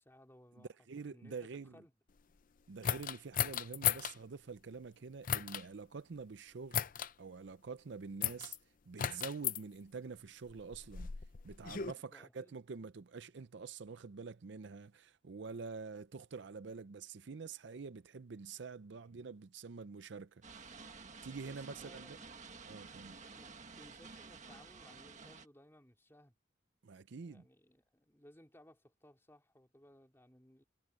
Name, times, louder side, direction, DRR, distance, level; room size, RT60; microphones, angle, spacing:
voice 1, 0.0-0.7 1.0-1.9 11.8-12.6 21.3-22.3 23.3-26.3 27.2-30.6, equal, 10° left, 3.0 m, -62 dB
voice 2, 0.6-1.8 2.7-6.8 7.2-8.6 8.9-11.1 11.4-20.8 21.2-22.2 22.7-23.2 26.8-27.4, right 4 dB, 60° right, 0.5 m, -47 dB
sound 1, 2.8-4.2 5.2-5.6 6.7-7.1 8.2-8.6 9.0-9.6 10.5-11.9, left 9 dB, 45° left, 0.5 m, -35 dB
sound 2, 20.4-25.5, right 4 dB, 35° right, 1.8 m, -52 dB
head